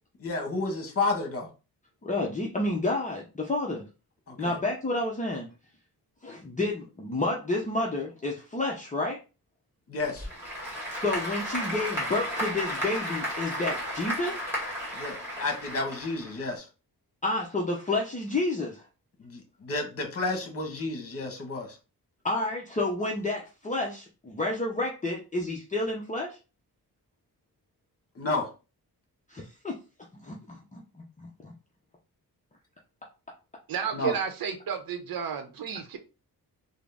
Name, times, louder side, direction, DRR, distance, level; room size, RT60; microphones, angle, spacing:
voice 1, 0.2-1.5 4.3-4.6 9.9-10.3 14.9-16.6 19.2-21.8 28.1-28.5 33.9-34.1, left 3 dB, 35° left, 3 dB, 1.1 m, -31 dB
voice 2, 2.0-3.8 4.4-5.5 6.2-9.2 10.9-14.4 17.2-18.8 22.2-26.4 29.3-29.8 30.1-31.0, left 2 dB, 20° left, -2 dB, 0.6 m, -30 dB
Applause / Crowd, 10.0-16.6, equal, 5° right, 1.9 m, -34 dB
voice 3, 33.7-36.0, right 8 dB, 65° right, 6 dB, 0.7 m, -32 dB
3.7 x 2.0 x 3.4 m, 0.31 s
wide cardioid pair, 110°, 38 cm